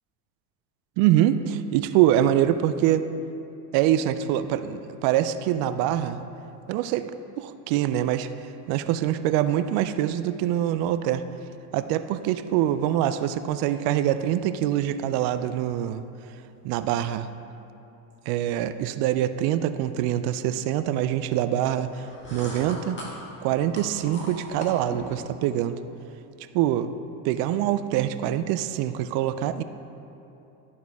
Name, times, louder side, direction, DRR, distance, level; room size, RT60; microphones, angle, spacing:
voice 1, 1.0-3.1 3.7-6.2 6.7-7.1 7.4-8.3 8.7-11.2 11.7-16.0 16.6-17.3 18.3-23.0 23.4-25.8 26.5-26.9 27.2-29.6, right 11 dB, 55° right, 11 dB, 0.5 m, -24 dB
sound 1, 21.9-25.2, left 1 dB, 25° left, 1.6 m, -40 dB
12.0 x 4.3 x 3.5 m, 2.9 s
supercardioid pair, 100°, 47 cm